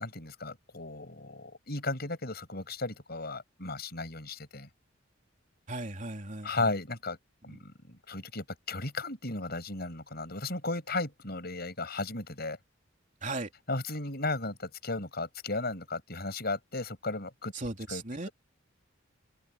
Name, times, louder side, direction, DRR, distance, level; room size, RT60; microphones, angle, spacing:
voice 1, 0.0-4.7 6.4-7.2 7.4-12.6 13.7-17.5 17.9-18.3, left 3 dB, 55° left, 7.4 m, -35 dB
voice 2, 5.7-6.5 7.5-7.6 13.2-13.5 17.5-18.3, right 2 dB, 40° right, 3.3 m, -37 dB
open air
head